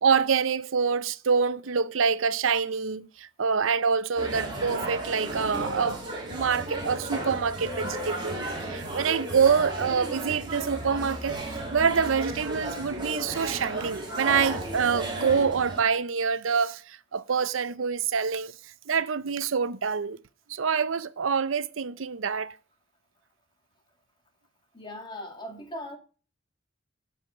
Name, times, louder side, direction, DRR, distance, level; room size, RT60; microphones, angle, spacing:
voice 1, 0.0-6.0 6.3-11.4 11.7-18.5 18.9-20.2 20.5-22.5, right 6 dB, 85° right, 0.6 m, -26 dB
sound 1, 4.2-15.8, right 1 dB, 25° right, 2.9 m, -34 dB
voice 2, 24.7-26.0, left 1 dB, 25° left, 2.1 m, -39 dB
12.5 x 5.0 x 7.0 m
head